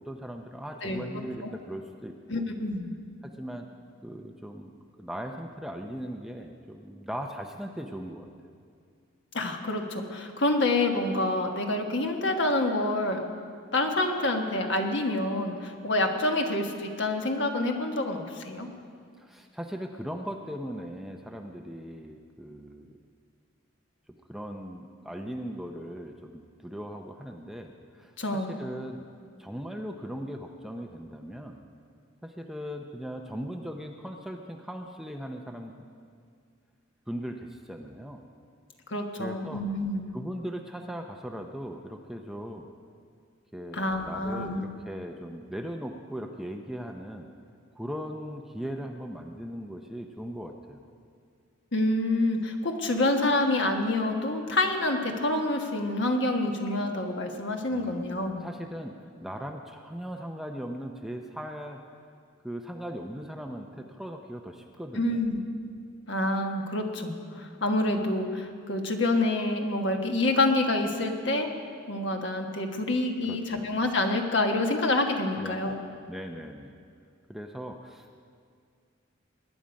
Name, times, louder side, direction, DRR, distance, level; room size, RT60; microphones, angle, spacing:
voice 1, 0.0-2.5 3.2-3.7 4.0-4.7 5.0-8.3 19.2-22.9 24.3-29.1 29.4-31.6 32.2-35.7 37.1-38.2 39.2-39.6 40.1-42.7 43.5-47.3 47.7-50.8 57.7-58.0 58.4-61.8 62.4-65.2 68.0-68.1 73.2-73.7 75.4-75.6 76.1-76.8 77.3-78.2, equal, ahead, 3 dB, 0.6 m, -39 dB
voice 2, 2.3-2.9 9.3-13.2 13.7-18.7 28.2-28.5 38.9-40.1 43.7-44.7 51.7-58.4 64.9-65.4 66.1-71.5 71.9-75.7, left 2 dB, 60° left, 3 dB, 1.4 m, -27 dB
21.5 x 10.0 x 5.2 m, 2.2 s
head